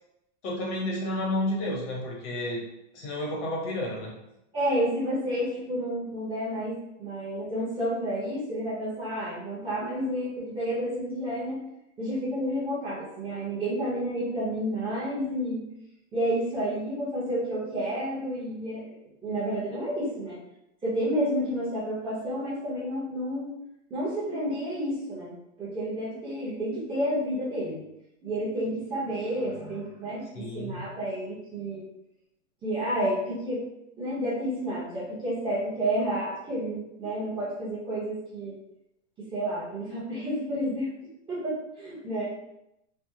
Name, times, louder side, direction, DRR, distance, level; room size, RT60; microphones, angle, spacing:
voice 1, 0.4-2.6 2.9-4.1 30.3-30.8, left 1 dB, 65° left, -2 dB, 1.1 m, -31 dB
voice 2, 4.5-11.6 12.0-15.6 16.1-18.9 19.2-20.4 20.8-23.5 23.9-27.8 28.2-31.8 32.6-33.6 34.0-38.5 39.2-40.9 41.3-42.3, equal, 15° right, -9 dB, 0.7 m, -30 dB
3.4 x 2.0 x 2.7 m, 0.85 s
supercardioid pair, 155°, 38 cm